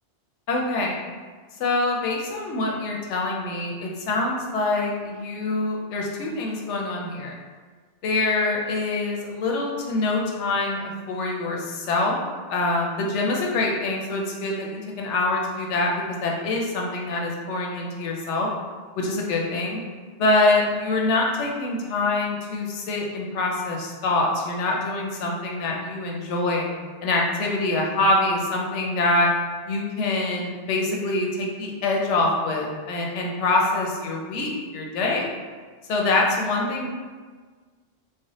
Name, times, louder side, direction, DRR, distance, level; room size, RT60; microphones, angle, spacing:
voice 1, 0.5-1.0 1.6-7.3 8.0-12.2 12.5-18.5 19.0-19.8 20.2-26.7 27.0-29.3 29.7-35.3 35.9-36.9, left 2 dB, 85° left, -1 dB, 0.9 m, -25 dB
3.3 x 2.0 x 3.9 m, 1.5 s
omnidirectional pair, 1.2 m